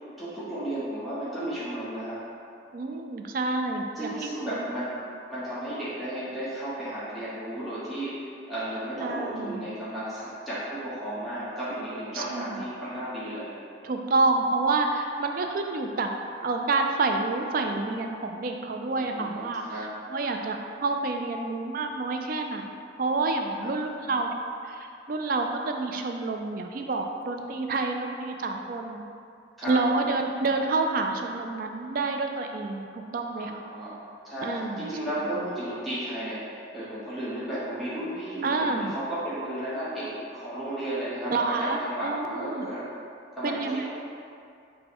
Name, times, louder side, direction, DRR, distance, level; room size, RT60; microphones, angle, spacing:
voice 1, 0.2-2.2 4.0-13.5 18.9-19.9 23.6-24.1 29.6-29.8 33.4-34.0 34.2-41.3 41.6-42.9 43.4-43.9, right 1 dB, ahead, -12 dB, 0.9 m, -34 dB
voice 2, 2.7-4.7 9.0-9.7 12.1-12.6 13.8-16.1 16.4-19.6 20.1-22.6 23.0-24.3 24.6-29.0 29.7-33.6 34.4-34.9 35.2-35.3 38.4-38.9 41.3-42.7 43.4-43.9, right 3 dB, 50° right, 4 dB, 0.3 m, -28 dB
5.3 x 2.2 x 4.3 m, 2.4 s
head